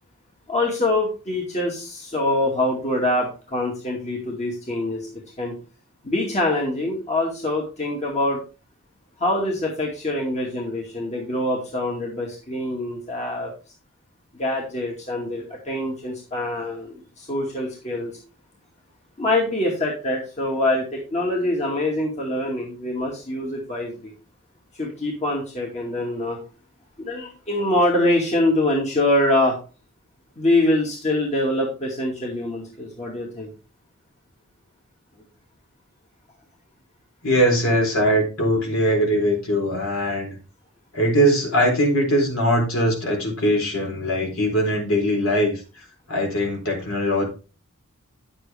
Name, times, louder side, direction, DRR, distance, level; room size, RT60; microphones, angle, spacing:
voice 1, 0.5-5.1 5.4-5.5 6.0-8.4 9.2-13.5 14.4-18.2 19.2-24.1 24.8-26.4 27.0-29.6 30.4-33.5, left 1 dB, 30° left, -1 dB, 2.3 m, -24 dB
voice 2, 37.2-40.3 40.9-45.6 46.1-47.3, equal, 65° left, 1 dB, 3.9 m, -21 dB
9.8 x 7.9 x 3.5 m, 0.34 s
head